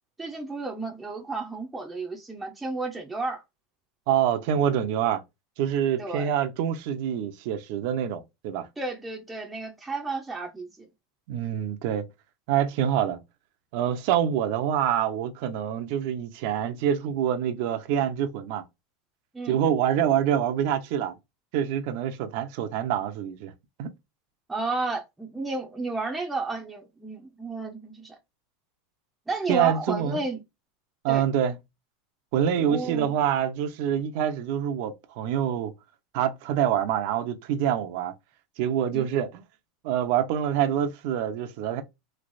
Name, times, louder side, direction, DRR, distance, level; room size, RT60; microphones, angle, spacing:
voice 1, 0.2-3.4 6.0-6.3 8.8-10.9 19.3-19.6 24.5-28.2 29.3-30.4 31.1-31.2 32.6-33.1 38.9-39.0, right 3 dB, 10° right, 0.7 m, -32 dB
voice 2, 4.1-5.2 5.6-8.7 11.3-12.1 12.5-13.2 13.7-18.6 19.5-21.2 21.5-23.5 23.8-23.9 29.5-30.2 31.0-31.6 32.3-35.7 36.1-38.1 38.6-39.4 39.8-41.8, right 9 dB, 60° right, 0.7 m, -26 dB
3.2 x 2.9 x 2.6 m
supercardioid pair, 140°, 0 cm